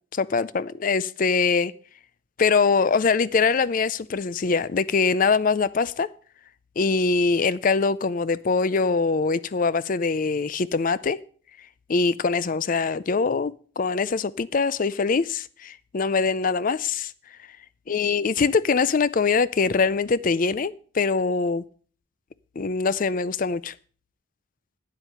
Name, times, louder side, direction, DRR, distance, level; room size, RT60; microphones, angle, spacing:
voice 1, 0.1-1.7 2.4-6.1 6.8-11.2 11.9-17.1 17.9-21.6 22.6-23.7, left 4 dB, 40° left, 0.4 m, -23 dB
9.5 x 7.6 x 6.6 m
head